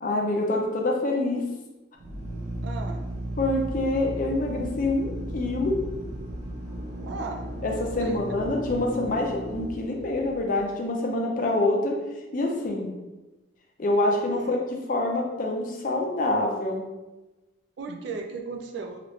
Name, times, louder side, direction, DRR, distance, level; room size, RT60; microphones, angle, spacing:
voice 1, 0.0-1.5 3.4-5.9 7.6-12.0 12.3-12.9 13.8-16.9 17.9-18.0, left 2 dB, 45° left, 1 dB, 0.5 m, -26 dB
Drill, 1.9-10.6, right 1 dB, 40° right, 0.8 m, -35 dB
voice 2, 2.6-3.0 7.0-7.5 8.0-8.2 14.3-14.5 17.8-19.0, right 4 dB, 60° right, 4 dB, 0.3 m, -36 dB
3.0 x 2.4 x 3.0 m, 1.1 s
head